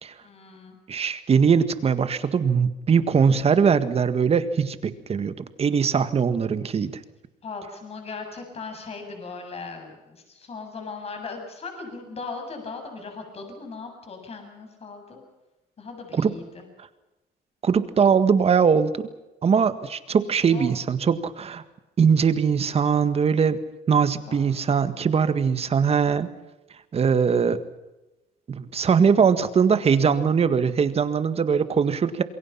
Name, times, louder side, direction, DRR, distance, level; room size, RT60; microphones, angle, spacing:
voice 1, 0.2-0.8 7.4-15.2 15.8-16.7 20.5-20.8 24.1-24.7, left 4 dB, 35° left, 5 dB, 7.4 m, -38 dB
voice 2, 0.9-6.9 16.1-16.3 17.6-19.1 19.4-21.6 22.0-23.6 23.9-26.3 26.9-27.6 28.5-32.2, right 6 dB, 35° right, 11 dB, 1.7 m, -21 dB
27.5 x 22.5 x 5.8 m, 1.0 s
cardioid pair, 110°, 17 cm